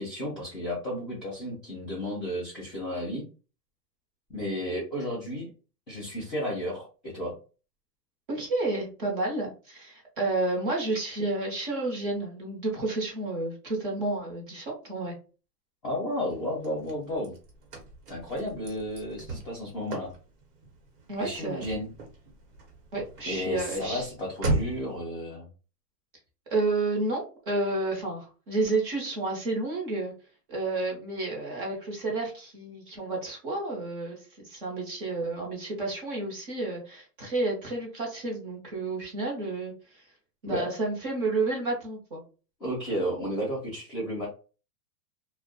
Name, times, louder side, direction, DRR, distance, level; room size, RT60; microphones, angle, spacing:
voice 1, 0.0-3.3 4.3-5.5 5.9-7.3 15.8-17.3 18.1-20.1 21.2-21.9 23.2-25.5 40.5-40.6 42.6-44.3, equal, 5° left, -15 dB, 0.4 m, -33 dB
voice 2, 8.3-15.1 21.1-21.6 22.9-24.0 26.5-30.1 30.5-40.1 40.4-42.2, right 2 dB, 30° right, -2 dB, 0.6 m, -31 dB
Car / Slam, 16.3-25.0, right 2 dB, 65° right, 1.0 m, -37 dB
2.3 x 2.1 x 2.6 m, 0.35 s
supercardioid pair, 170°, 50 cm